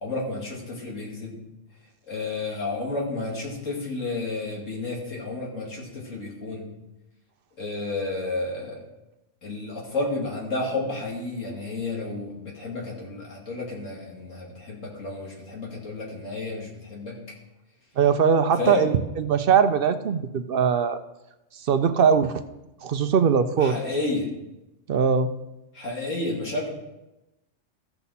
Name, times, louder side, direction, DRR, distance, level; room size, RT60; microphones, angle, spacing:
voice 1, 0.0-1.3 2.1-6.7 7.6-8.9 9.4-17.2 18.6-18.9 23.6-24.3 25.7-26.7, left 2 dB, 90° left, -3 dB, 2.7 m, -31 dB
voice 2, 18.0-21.0 21.6-22.4 22.8-23.7 24.9-25.3, right 6 dB, 55° right, 10 dB, 0.7 m, -21 dB
14.5 x 7.0 x 4.2 m, 0.96 s
omnidirectional pair, 1.3 m